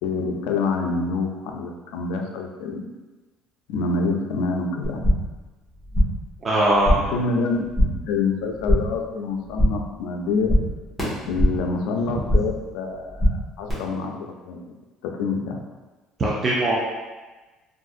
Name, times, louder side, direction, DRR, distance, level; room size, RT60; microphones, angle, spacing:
voice 1, 0.0-2.9 3.7-5.1 6.9-10.5 11.3-14.7 15.0-15.6, left 4 dB, 85° left, 2 dB, 0.4 m, -27 dB
sound 1, 4.8-5.4 5.7-6.3 6.6-7.2 7.5-8.1 8.4-9.0 9.3-9.9 10.2-11.7 12.0-12.6 12.9-13.7, equal, 5° left, 1.4 m, -23 dB
voice 2, 6.4-7.0 16.2-16.8, right 1 dB, 30° right, -6 dB, 0.5 m, -20 dB
3.6 x 2.5 x 2.4 m, 1.2 s
cardioid pair, 130°, 0 cm